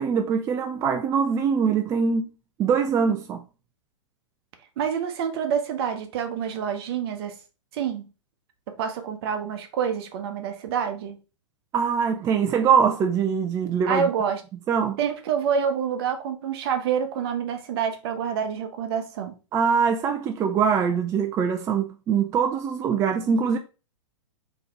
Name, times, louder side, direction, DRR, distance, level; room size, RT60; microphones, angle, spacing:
voice 1, 0.0-2.3 2.6-3.4 11.7-14.1 14.7-15.0 19.5-23.6, right 6 dB, 20° right, 0.3 m, -23 dB
voice 2, 4.8-7.3 7.7-8.1 8.8-11.2 13.9-14.4 15.0-19.4, right 7 dB, 55° right, 0.9 m, -27 dB
3.9 x 3.0 x 3.3 m
hypercardioid pair, 115°, 16 cm